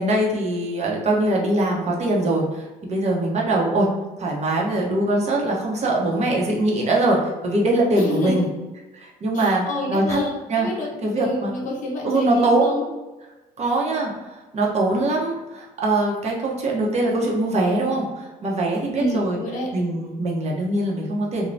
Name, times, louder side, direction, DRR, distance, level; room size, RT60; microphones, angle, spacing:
voice 1, 0.0-3.9 4.2-8.5 9.0-10.2 10.5-10.7 11.0-11.5 12.0-12.6 13.6-19.4 19.7-21.5, right 2 dB, 40° right, -2 dB, 0.8 m, -22 dB
voice 2, 8.0-8.5 9.3-12.8 19.0-19.7, left 1 dB, 50° left, -2 dB, 0.9 m, -28 dB
2.6 x 2.2 x 3.2 m, 1.1 s
cardioid pair, 110°, 17 cm